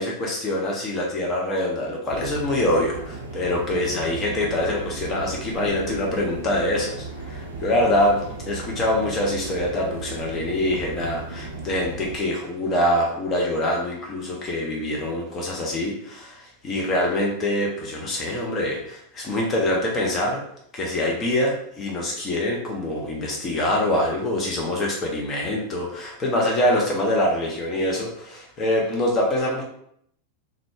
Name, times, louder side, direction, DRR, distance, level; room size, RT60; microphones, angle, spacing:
voice 1, 0.0-20.4 20.7-29.6, left 1 dB, 25° left, -1 dB, 0.7 m, -24 dB
sound 1, 2.1-12.2, right 3 dB, 65° right, 0.6 m, -36 dB
3.6 x 2.2 x 3.6 m, 0.72 s
figure-of-eight pair, 90°, 0 cm